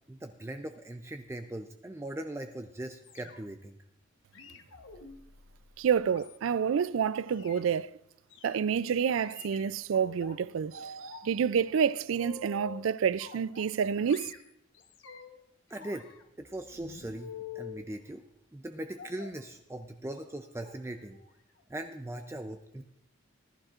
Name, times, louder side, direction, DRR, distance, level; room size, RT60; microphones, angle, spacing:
voice 1, 0.1-3.8 15.7-16.1 16.4-18.2 18.5-21.2 21.7-22.8, right 1 dB, 15° right, 0.5 m, -40 dB
sound 1, 3.0-3.7 4.3-6.8 7.3-7.6 8.3-8.6 9.2-10.4 10.7-11.3 11.6-12.8 13.2-13.8 14.1-15.4 15.7-17.8 19.0-19.4 20.1-20.3 20.5-20.8 21.1-21.3 21.6-21.7, left 6 dB, 70° left, 1.1 m, -48 dB
voice 2, 5.8-7.9 8.4-14.3, right 7 dB, 80° right, 0.4 m, -28 dB
18.5 x 11.5 x 2.5 m
head